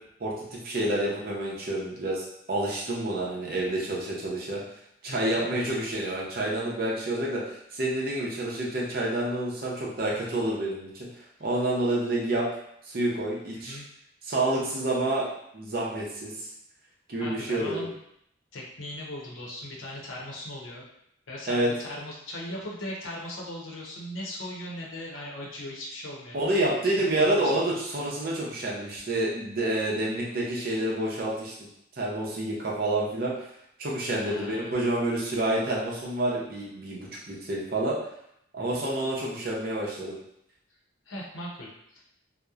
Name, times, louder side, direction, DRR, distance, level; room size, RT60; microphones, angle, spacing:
voice 1, 0.2-4.6 5.0-7.4 7.7-10.9 11.4-12.5 12.8-13.8 14.2-15.3 15.5-16.5 17.1-17.9 21.5-21.7 26.3-31.7 32.0-33.3 33.8-38.0 38.5-40.1, right 1 dB, 50° right, -4 dB, 0.6 m, -28 dB
voice 2, 5.1-5.4 13.5-13.9 17.2-18.0 18.5-20.9 21.3-26.4 27.0-27.5 34.2-34.8 38.6-38.9 41.1-42.0, left 1 dB, 80° left, -3 dB, 0.7 m, -39 dB
2.8 x 2.0 x 2.3 m, 0.75 s
head